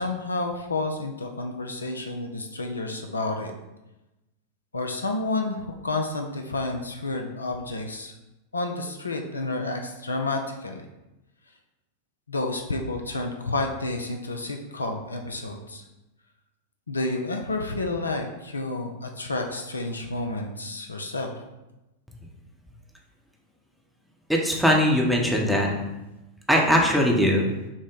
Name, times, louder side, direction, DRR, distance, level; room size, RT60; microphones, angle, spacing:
voice 1, 0.0-3.5 4.7-8.1 8.5-10.9 12.3-15.8 16.9-21.3, left 2 dB, 75° left, 4 dB, 0.4 m, -30 dB
voice 2, 24.3-25.8 26.5-27.5, equal, ahead, -2 dB, 0.7 m, -20 dB
6.0 x 2.1 x 3.8 m, 0.99 s
figure-of-eight pair, 90°, 0 cm